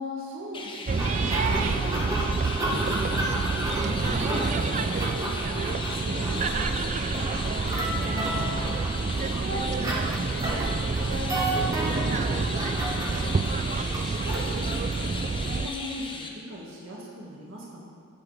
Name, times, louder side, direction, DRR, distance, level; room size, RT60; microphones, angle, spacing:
voice 1, 0.0-7.3 8.0-8.7 9.0-10.6 10.9-13.9 14.2-17.9, equal, 70° right, -4 dB, 1.8 m, -39 dB
Chirp tweet, 0.5-16.3, left 3 dB, 25° left, 0.8 m, -37 dB
sound 1, 0.9-15.7, right 4 dB, 35° right, 0.3 m, -28 dB
sound 2, 1.0-15.5, right 1 dB, 15° right, 1.1 m, -33 dB
16.5 x 8.0 x 3.4 m, 2.1 s
head